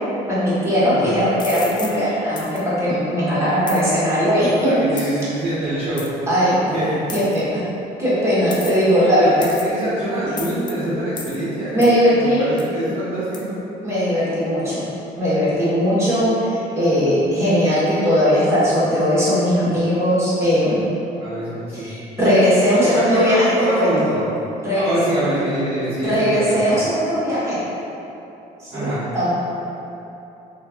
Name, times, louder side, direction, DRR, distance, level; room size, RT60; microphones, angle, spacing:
voice 1, 0.3-5.1 6.3-6.8 7.1-7.7 8.0-9.4 11.7-12.4 13.8-14.9 15.2-20.8 21.7-24.1 24.6-24.9 26.0-27.6 28.6-29.3, equal, 15° right, -11 dB, 1.4 m, -19 dB
sound 1, 1.4-2.0 2.4-2.6 3.7-3.8 5.0-5.2 6.0-6.1 7.1-7.4 8.5-8.9 9.4-9.8 10.4-10.7 11.2-11.4 11.8-12.0 12.6-12.7 13.3-13.4, left 5 dB, 25° left, 0.3 m, -33 dB
voice 2, 4.6-6.1 6.7-7.0 8.9-13.6 21.2-21.9 22.8-24.2 24.7-26.7 28.7-29.0, right 1 dB, 35° right, -13 dB, 0.8 m, -25 dB
3.0 x 2.5 x 3.5 m, 3.0 s
cardioid pair, 110°, 17 cm